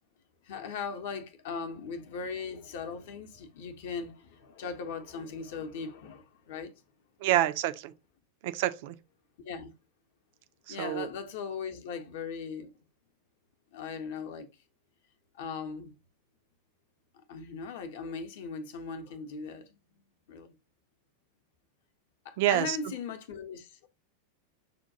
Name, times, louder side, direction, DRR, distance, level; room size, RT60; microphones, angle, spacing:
voice 1, 0.4-6.7 9.4-9.7 10.7-12.7 13.7-14.5 15.3-15.9 17.3-19.8 20.3-20.5 22.2-23.9, left 5 dB, 55° left, 0.7 m, -39 dB
voice 2, 7.2-7.9 8.4-9.0 10.7-11.1 22.4-22.8, right 14 dB, 50° right, 0.3 m, -27 dB
6.7 x 2.2 x 2.6 m
figure-of-eight pair, 90°, 0 cm